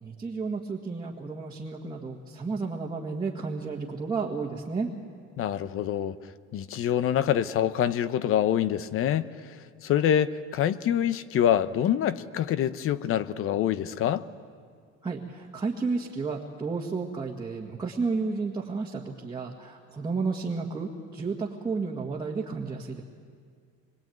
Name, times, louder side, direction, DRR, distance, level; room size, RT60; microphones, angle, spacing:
voice 1, 0.0-4.9 15.0-23.0, right 4 dB, 15° right, -2 dB, 1.8 m, -32 dB
voice 2, 5.4-6.2 6.5-9.3 9.8-14.2, left 10 dB, 45° left, 14 dB, 0.9 m, -25 dB
26.0 x 22.5 x 9.3 m, 2.1 s
cardioid pair, 160°, 30 cm